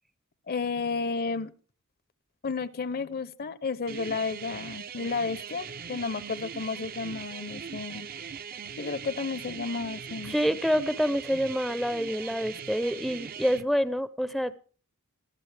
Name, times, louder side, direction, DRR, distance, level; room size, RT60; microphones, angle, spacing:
voice 1, 0.5-1.5 2.4-8.1 8.8-10.3, left 4 dB, 45° left, 18 dB, 0.6 m, -32 dB
sound 1, 3.9-13.6, right 7 dB, 45° right, 0.6 m, -40 dB
voice 2, 10.3-14.5, equal, ahead, 14 dB, 0.5 m, -27 dB
20.0 x 14.0 x 3.3 m, 0.39 s
head